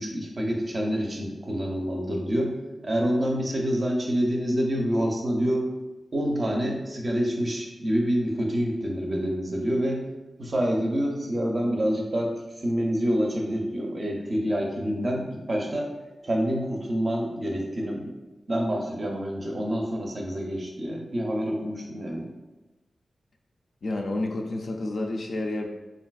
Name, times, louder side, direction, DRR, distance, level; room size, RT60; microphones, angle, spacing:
voice 1, 0.0-2.5 2.8-5.7 6.1-10.0 10.4-12.3 12.6-15.9 16.2-18.1 18.5-22.3, equal, 35° right, 0 dB, 0.5 m, -27 dB
voice 2, 23.8-25.7, left 2 dB, 60° left, 2 dB, 0.3 m, -30 dB
3.3 x 2.5 x 2.3 m, 1.1 s
wide cardioid pair, 165°, 0 cm